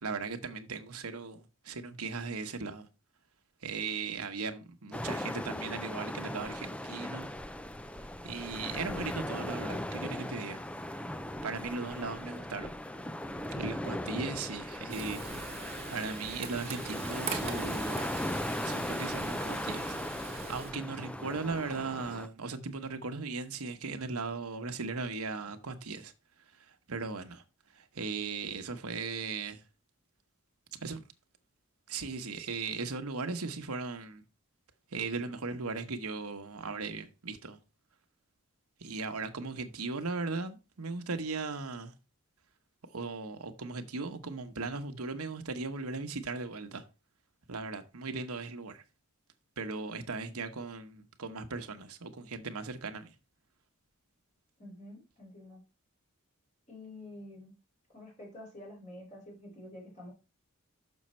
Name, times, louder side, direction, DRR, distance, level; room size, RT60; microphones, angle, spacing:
voice 1, 0.0-2.9 3.6-7.3 8.2-10.6 11.4-12.7 13.5-15.4 15.9-18.0 18.6-20.0 20.3-26.1 26.7-27.4 27.7-29.6 30.8-31.0 31.9-34.2 34.9-37.6 38.8-41.9 42.8-46.8 47.5-48.8 49.6-53.1, right 4 dB, 85° right, 1.1 m, -38 dB
sound 1, 4.9-22.3, left 1 dB, 5° left, 0.4 m, -38 dB
Frying (food), 14.9-20.7, right 4 dB, 30° right, 1.3 m, -42 dB
voice 2, 54.6-55.6 56.7-57.5 57.9-60.1, left 1 dB, 35° left, 3.8 m, -48 dB
6.4 x 6.3 x 4.3 m
head